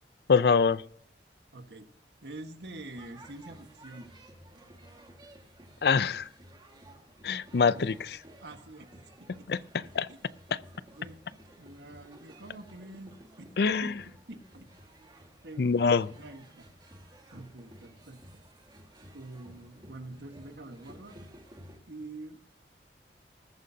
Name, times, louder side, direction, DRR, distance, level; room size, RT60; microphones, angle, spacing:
voice 1, 0.3-0.8 5.8-6.3 7.2-8.1 9.5-10.1 13.6-13.9 15.6-16.1, left 5 dB, 65° left, 0.4 m, -24 dB
voice 2, 1.5-1.9 2.2-4.1 7.7-7.8 8.4-9.5 10.1-10.2 11.0-11.2 11.6-13.1 13.4-13.5 13.8-14.7 15.4-15.7 16.2-16.7 17.3-18.2 19.1-21.2 21.9-22.4, right 2 dB, 80° right, 1.5 m, -46 dB
sound 1, 2.6-21.8, right 1 dB, 25° right, 1.8 m, -54 dB
20.5 x 9.2 x 2.8 m
head